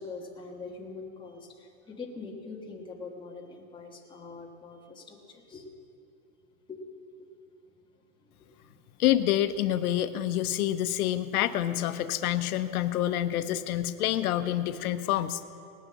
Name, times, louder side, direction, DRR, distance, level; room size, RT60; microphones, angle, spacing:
voice 1, 0.0-5.7 6.7-6.8 7.2-7.3 8.2-8.8, left 4 dB, 10° left, -2 dB, 1.3 m, -43 dB
voice 2, 9.0-15.4, left 12 dB, 85° left, 10 dB, 0.7 m, -27 dB
18.5 x 6.4 x 7.3 m, 2.5 s
supercardioid pair, 155°, 43 cm